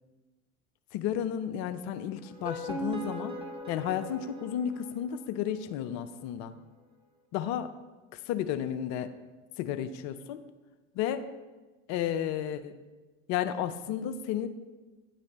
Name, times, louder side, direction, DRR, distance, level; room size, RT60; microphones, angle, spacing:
voice 1, 0.9-3.4 3.7-6.6 7.3-7.7 8.1-9.1 9.6-10.4 10.9-11.2 11.9-12.7 13.3-14.5, left 10 dB, 45° left, 10 dB, 0.5 m, -32 dB
sound 1, 2.2-5.4, right 1 dB, 15° right, 1.3 m, -39 dB
9.4 x 3.2 x 4.1 m, 1.2 s
figure-of-eight pair, 75°, 39 cm